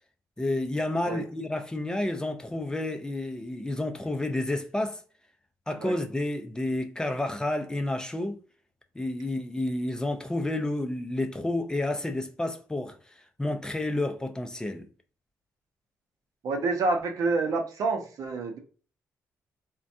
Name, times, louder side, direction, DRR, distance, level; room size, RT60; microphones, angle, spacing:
voice 1, 0.4-5.0 5.7-8.4 9.0-13.0 13.4-14.9, left 1 dB, 10° left, 0.4 m, -30 dB
voice 2, 16.4-18.6, right 3 dB, 70° right, 0.6 m, -28 dB
2.4 x 2.2 x 2.6 m
cardioid pair, 90°, 6 cm